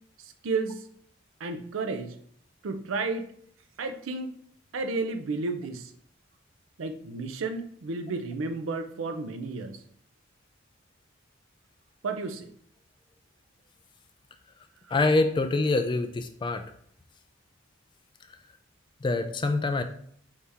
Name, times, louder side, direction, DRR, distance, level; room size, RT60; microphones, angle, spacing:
voice 1, 0.2-0.8 1.4-2.2 2.6-3.3 3.8-4.4 4.7-5.9 6.8-9.8 12.0-12.5, right 3 dB, 80° right, 8 dB, 0.5 m, -32 dB
voice 2, 14.9-16.6 19.0-19.8, left 3 dB, 25° left, 8 dB, 0.3 m, -25 dB
4.8 x 2.8 x 3.4 m, 0.63 s
head